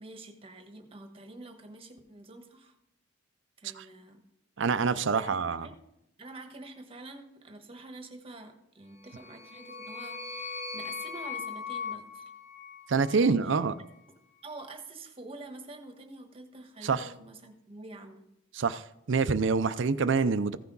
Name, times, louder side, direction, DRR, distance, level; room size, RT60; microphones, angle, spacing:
voice 1, 0.0-2.7 3.6-4.2 4.7-5.3 5.6-5.7 6.2-12.3 13.1-13.6 14.4-18.2, right 2 dB, 30° right, 1.2 m, -47 dB
voice 2, 4.6-5.7 12.9-13.8 16.8-17.1 18.5-20.6, right 4 dB, 60° right, 0.5 m, -26 dB
sound 1, 9.0-13.4, left 5 dB, 30° left, 1.7 m, -40 dB
15.0 x 5.9 x 3.9 m
head